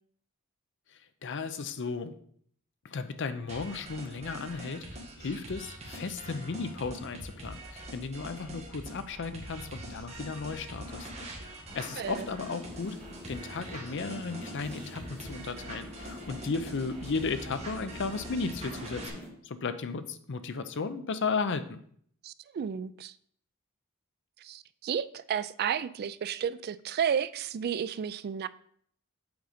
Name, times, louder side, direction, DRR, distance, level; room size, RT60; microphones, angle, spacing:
voice 1, 0.9-2.1 2.8-13.0 13.3-21.8, left 4 dB, 60° left, 0.6 m, -35 dB
sound 1, 3.5-19.1, right 1 dB, 30° right, 1.6 m, -44 dB
sound 2, 9.5-13.1 13.6-13.8, right 1 dB, 65° right, 1.5 m, -56 dB
sound 3, 11.7-19.3, left 1 dB, 5° left, 2.0 m, -46 dB
voice 2, 22.2-23.1 24.4-28.5, right 8 dB, 45° right, 0.3 m, -32 dB
8.0 x 3.8 x 5.0 m
head